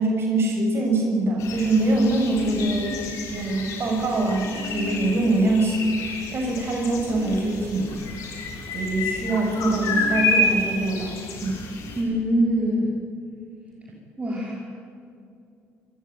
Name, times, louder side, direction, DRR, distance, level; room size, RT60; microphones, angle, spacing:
voice 1, 0.0-7.9 8.7-11.6, right 2 dB, 45° right, 1 dB, 6.9 m, -24 dB
sound 1, 1.4-12.0, left 2 dB, 75° left, 6.5 m, -30 dB
voice 2, 12.0-12.9 14.2-14.6, equal, 25° right, -2 dB, 5.4 m, -23 dB
28.5 x 14.5 x 9.6 m, 2.5 s
supercardioid pair, 75°, 6 cm